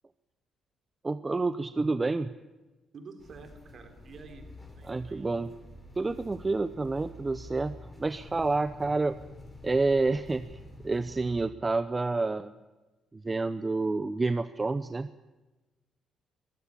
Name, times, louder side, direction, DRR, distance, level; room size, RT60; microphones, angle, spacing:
voice 1, 1.0-2.3 4.8-5.5 6.0-9.2 9.6-12.5 13.1-15.1, right 3 dB, 20° right, 12 dB, 0.7 m, -29 dB
voice 2, 2.9-5.3, right 4 dB, 45° right, 7 dB, 3.7 m, -49 dB
sound 1, 3.2-11.4, left 1 dB, 10° left, 5.2 m, -48 dB
23.0 x 15.5 x 10.0 m, 1.1 s
cardioid pair, 145°, 0 cm